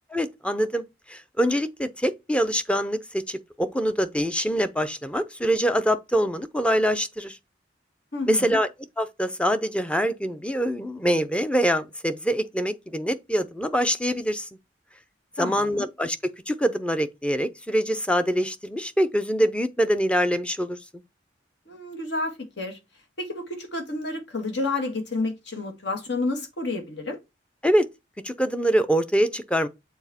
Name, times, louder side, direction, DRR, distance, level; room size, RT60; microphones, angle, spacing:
voice 1, 0.1-7.4 8.3-8.7 9.0-14.5 15.4-20.8 27.6-27.9 28.2-29.7, equal, 5° left, 0.5 m, -24 dB
voice 2, 8.1-8.6 15.4-15.9 21.7-22.8 23.2-27.2, left 2 dB, 70° left, 1.7 m, -30 dB
7.0 x 4.1 x 4.2 m
head